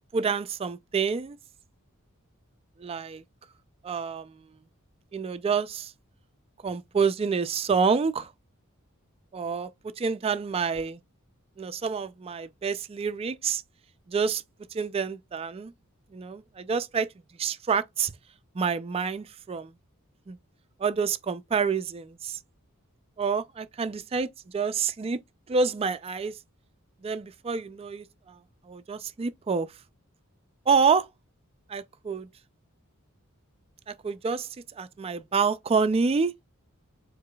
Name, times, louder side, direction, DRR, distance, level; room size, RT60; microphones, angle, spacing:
voice 1, 0.1-1.4 2.8-3.2 3.8-4.3 5.1-5.9 6.6-8.3 9.3-11.0 11.6-13.6 14.1-14.4 14.7-15.7 16.1-17.1 17.4-18.1 18.5-19.7 20.3-20.4 20.8-22.4 23.2-25.2 25.5-26.4 27.0-28.4 28.7-29.7 30.7-31.1 31.7-32.3 33.9-34.5 34.8-36.3, right 5 dB, 25° right, 0.3 m, -28 dB
4.8 x 4.0 x 2.2 m
head